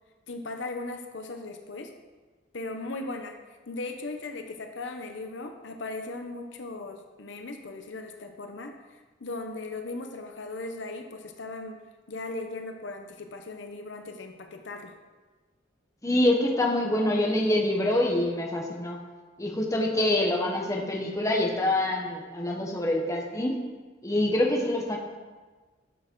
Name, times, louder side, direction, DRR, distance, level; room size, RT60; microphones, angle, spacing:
voice 1, 0.3-1.9 2.5-3.4 3.7-8.8 9.2-11.8 12.1-14.9, left 2 dB, 70° left, 5 dB, 0.7 m, -37 dB
voice 2, 16.0-19.0 19.4-23.6 24.0-25.0, left 1 dB, 15° left, 0 dB, 1.1 m, -25 dB
12.0 x 6.5 x 3.8 m, 1.3 s
head